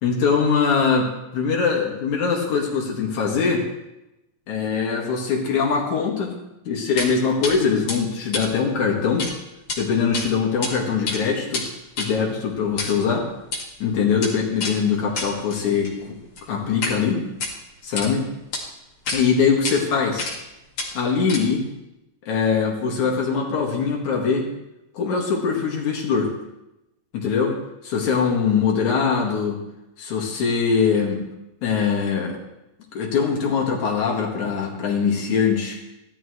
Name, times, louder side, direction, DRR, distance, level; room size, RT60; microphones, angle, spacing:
voice 1, 0.0-3.7 4.5-6.3 6.7-9.3 9.8-11.6 12.0-13.3 13.8-16.2 16.5-17.2 17.8-18.3 19.1-20.3 20.9-21.7 22.3-24.5 24.9-26.3 27.1-27.6 27.8-29.6 30.0-31.2 31.6-32.4 32.9-35.9, left 5 dB, 85° left, 0 dB, 3.4 m, -22 dB
sound 1, 7.0-7.1 7.4-7.5 7.9-9.3 9.6-9.8 10.1-10.7 11.0-17.0 17.3-18.1 18.5-18.6 19.1-19.2 19.6-19.8 20.2-20.5 20.8-21.7, left 3 dB, 50° left, 2.8 m, -30 dB
16.5 x 12.5 x 3.2 m, 0.92 s
omnidirectional pair, 3.3 m